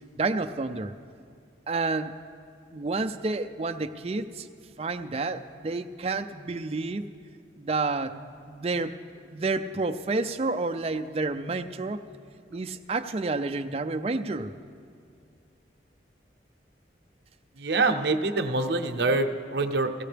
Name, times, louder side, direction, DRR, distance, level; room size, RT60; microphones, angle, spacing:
voice 1, 0.2-0.9 1.7-2.2 2.7-4.5 4.8-7.0 7.6-8.2 8.5-9.0 9.3-12.0 12.5-14.6, right 3 dB, 35° right, 8 dB, 0.4 m, -29 dB
voice 2, 17.6-20.0, right 3 dB, 65° right, 6 dB, 0.7 m, -25 dB
17.0 x 15.5 x 3.4 m, 2.3 s
head